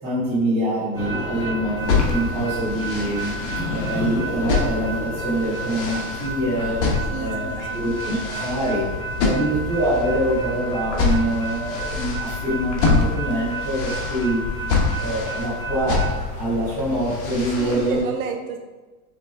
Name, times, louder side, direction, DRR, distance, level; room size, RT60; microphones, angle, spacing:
voice 1, 0.0-6.8 7.2-8.8 9.2-14.4 15.0-16.1 16.4-18.0, right 1 dB, 5° right, -13 dB, 0.4 m, -25 dB
sound 1, 0.9-17.6, equal, 20° left, 1.0 m, -31 dB
sound 2, 1.8-18.0, left 4 dB, 80° left, 1.3 m, -27 dB
voice 2, 7.1-7.8 17.5-18.6, right 5 dB, 60° right, 3 dB, 0.8 m, -31 dB
sound 3, 10.1-17.6, left 6 dB, 40° left, 1.2 m, -49 dB
6.1 x 2.4 x 3.5 m, 1.3 s
supercardioid pair, 175°, 48 cm